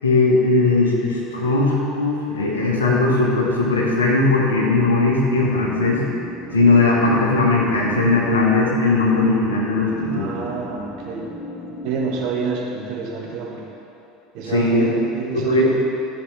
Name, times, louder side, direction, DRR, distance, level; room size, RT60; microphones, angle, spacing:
voice 1, 0.0-6.0 6.5-10.5 14.4-14.9 15.3-15.7, left 3 dB, 80° left, -3 dB, 1.5 m, -18 dB
sound 1, 4.5-12.4, left 1 dB, 30° left, 1.0 m, -36 dB
voice 2, 10.0-11.3 11.8-13.7 14.3-15.7, right 5 dB, 55° right, -1 dB, 1.5 m, -28 dB
12.0 x 7.4 x 3.4 m, 2.8 s
figure-of-eight pair, 70°, 0 cm